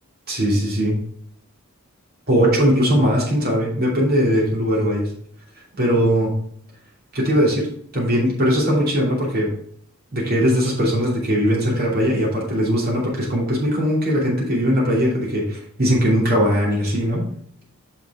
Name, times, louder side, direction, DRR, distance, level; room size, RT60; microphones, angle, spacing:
voice 1, 0.3-1.0 2.3-5.1 5.8-6.3 7.1-7.7 7.9-9.5 10.1-17.2, equal, 45° right, -4 dB, 2.8 m, -19 dB
6.3 x 6.0 x 3.7 m, 0.64 s
head